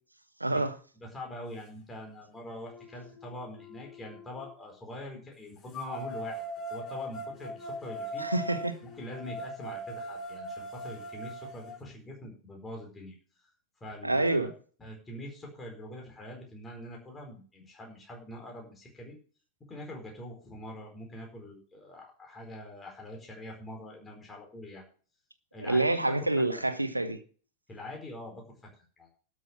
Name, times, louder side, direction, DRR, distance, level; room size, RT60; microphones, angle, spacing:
voice 1, 0.4-0.8 8.2-8.8 14.0-14.5 25.6-27.2, right 2 dB, 85° right, 1.2 m, -27 dB
voice 2, 1.0-6.4 6.7-8.3 8.8-13.1 13.8-14.5 14.8-19.2 19.7-24.9 25.5-26.7 27.7-29.1, left 1 dB, 15° left, 4.5 m, -44 dB
sound 1, 1.9-2.0 2.6-4.5 5.7-11.7, equal, 30° left, 5.8 m, -40 dB
12.5 x 6.7 x 7.3 m
figure-of-eight pair, 90°, 0 cm